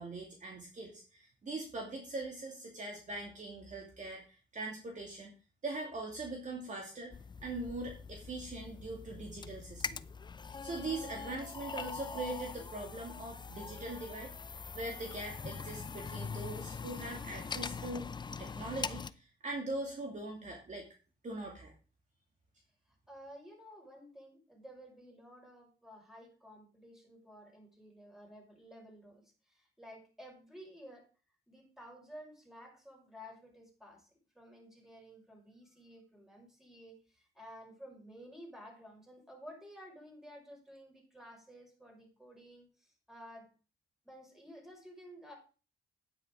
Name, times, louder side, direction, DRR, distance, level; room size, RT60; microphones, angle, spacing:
voice 1, 0.0-5.3 5.6-7.1 7.4-10.0 10.6-14.3 14.7-18.1 18.4-20.9 21.2-21.7, right 2 dB, 40° right, 0 dB, 2.5 m, -41 dB
sound 1, 7.1-19.1, left 5 dB, 20° left, 0.5 m, -43 dB
voice 2, 23.1-31.1 31.5-43.5 44.0-45.3, equal, ahead, 0 dB, 5.3 m, -53 dB
9.6 x 9.3 x 3.8 m, 0.36 s
cardioid pair, 90°, 20 cm